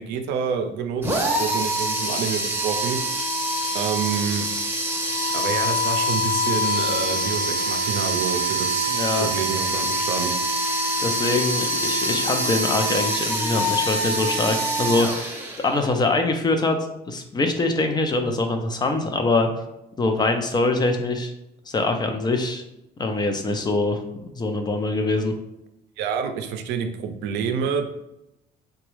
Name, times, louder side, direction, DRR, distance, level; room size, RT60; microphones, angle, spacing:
voice 1, 0.0-3.0 3.7-4.5 5.3-10.4 26.0-27.9, right 6 dB, 90° right, 6 dB, 0.5 m, -28 dB
sound 1, 1.0-15.9, equal, 10° right, 0.7 m, -25 dB
voice 2, 8.9-9.3 11.0-15.4 15.6-16.8 17.1-19.5 20.0-21.3 21.7-22.6 23.0-24.0 24.3-25.3, left 2 dB, 25° left, 5 dB, 0.5 m, -23 dB
3.9 x 2.3 x 3.1 m, 0.87 s
cardioid pair, 110°, 17 cm